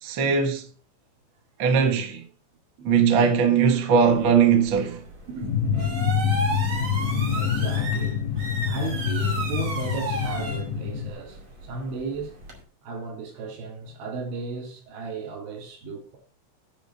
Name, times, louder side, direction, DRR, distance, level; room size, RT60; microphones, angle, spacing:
voice 1, 0.0-0.6 1.6-2.2 2.8-5.0, right 6 dB, 65° right, 1.2 m, -20 dB
sound 1, 4.0-12.6, right 2 dB, 35° right, 2.4 m, -34 dB
sound 2, 5.4-11.1, left 7 dB, 90° left, 3.5 m, -26 dB
voice 2, 7.3-8.2 8.7-12.4 12.8-16.2, right 3 dB, 85° right, 5.5 m, -35 dB
10.5 x 5.2 x 6.4 m
omnidirectional pair, 5.2 m